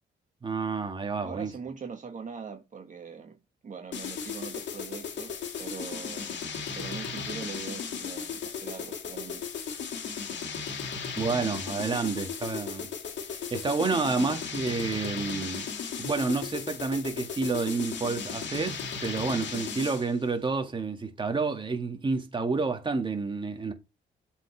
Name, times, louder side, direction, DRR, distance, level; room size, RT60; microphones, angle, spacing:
voice 1, 0.4-1.5 11.2-12.9 13.5-15.7 16.0-23.7, right 4 dB, 25° right, 1.8 m, -29 dB
voice 2, 1.2-3.4 3.6-6.4 6.7-9.4, right 6 dB, 40° right, 1.5 m, -42 dB
sound 1, 3.9-20.1, left 6 dB, 65° left, 2.3 m, -36 dB
7.7 x 4.9 x 3.4 m
cardioid pair, 90°, 20 cm